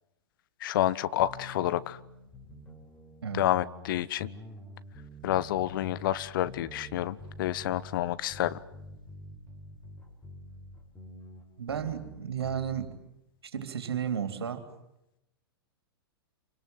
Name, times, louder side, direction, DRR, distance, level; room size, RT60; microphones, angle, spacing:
voice 1, 0.6-2.0 3.3-4.3 5.2-8.6, left 13 dB, 55° left, 17 dB, 1.1 m, -29 dB
sound 1, 1.2-13.0, equal, 10° left, 6.5 m, -47 dB
voice 2, 11.6-12.9 13.4-14.6, right 8 dB, 75° right, 8 dB, 3.4 m, -33 dB
27.5 x 25.5 x 7.8 m, 0.84 s
figure-of-eight pair, 105°, 13 cm